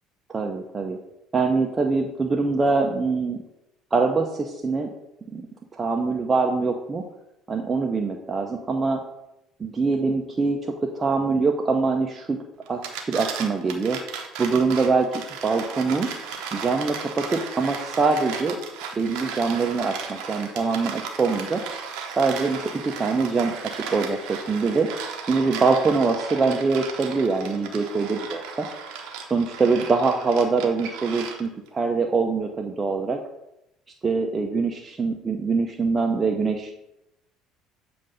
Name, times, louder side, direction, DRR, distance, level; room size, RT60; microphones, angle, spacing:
voice 1, 0.3-1.0 1.3-3.4 3.9-4.9 5.3-5.4 5.7-7.0 7.5-9.0 9.6-12.4 12.7-14.0 14.4-15.1 15.4-16.1 16.5-18.6 19.0-21.6 22.2-24.9 25.3-28.7 29.3-33.2 34.0-36.7, right 4 dB, 25° right, 2 dB, 0.6 m, -24 dB
sound 1, 12.6-31.7, right 6 dB, 65° right, 0.7 m, -35 dB
7.4 x 2.5 x 5.4 m, 0.88 s
figure-of-eight pair, 60°, 0 cm